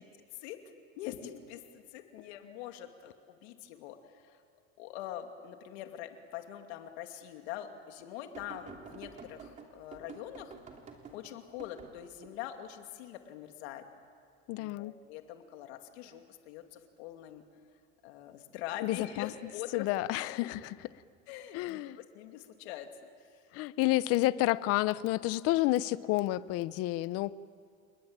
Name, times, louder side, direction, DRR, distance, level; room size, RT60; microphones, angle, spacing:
voice 1, 1.0-4.4 4.8-10.6 11.1-13.8 14.6-17.4 18.0-19.9 20.1-20.6 21.3-22.9 23.2-23.5, left 11 dB, 80° left, 2.6 m, -44 dB
sound 1, 8.3-12.3 15.8-16.1 17.3-17.4, right 5 dB, 20° right, 3.0 m, -50 dB
voice 2, 14.5-14.9 18.8-19.3 19.7-20.7 21.5-22.0 23.5-27.3, left 17 dB, 45° left, 0.8 m, -30 dB
29.5 x 21.0 x 9.0 m
cardioid pair, 150°, 32 cm